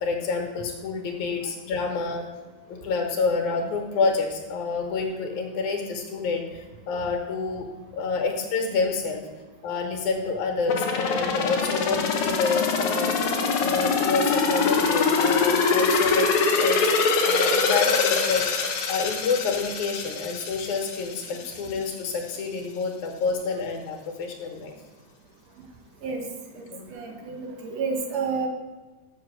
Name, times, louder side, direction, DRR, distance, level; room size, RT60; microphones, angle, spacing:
voice 1, 0.0-2.3 2.7-7.7 7.9-9.2 9.6-13.1 13.6-16.3 16.5-16.9 17.2-18.4 18.9-24.7 26.7-26.9, left 4 dB, 80° left, 3 dB, 2.7 m, -28 dB
sound 1, 10.7-21.4 21.8-21.9, left 4 dB, 65° left, 1.5 m, -24 dB
voice 2, 26.9-28.5, right 5 dB, 65° right, 3 dB, 2.2 m, -30 dB
7.2 x 7.0 x 6.2 m, 1.2 s
omnidirectional pair, 3.4 m